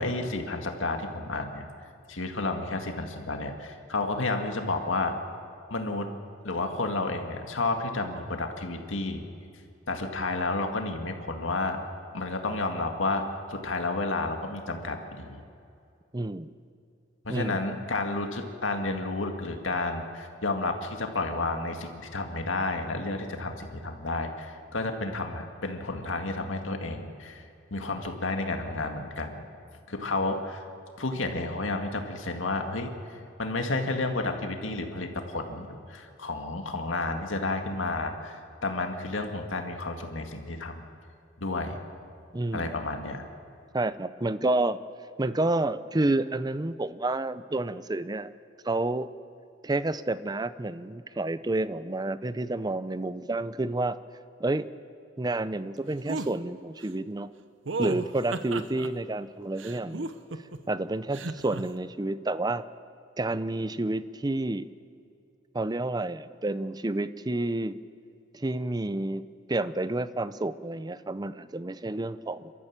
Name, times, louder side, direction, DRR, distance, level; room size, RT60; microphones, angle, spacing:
voice 1, 0.0-1.7 2.1-5.1 5.7-6.1 6.4-9.2 9.9-11.8 12.1-15.4 17.2-29.4 29.9-30.6 31.0-40.8 41.4-41.8 42.5-43.3, left 2 dB, 90° left, 4 dB, 2.1 m, -31 dB
voice 2, 16.1-16.5 17.3-17.6 42.3-42.8 43.7-44.8 45.2-48.3 48.6-49.1 49.6-54.0 54.4-54.7 55.2-57.3 57.8-60.1 60.7-62.6 63.2-64.7 65.5-67.8 68.3-72.5, right 2 dB, 20° right, 15 dB, 0.5 m, -29 dB
sound 1, 56.1-56.3 57.7-58.9 59.6-60.6 61.1-61.6, right 3 dB, 70° right, 1.0 m, -33 dB
28.0 x 13.5 x 7.4 m, 2.5 s
head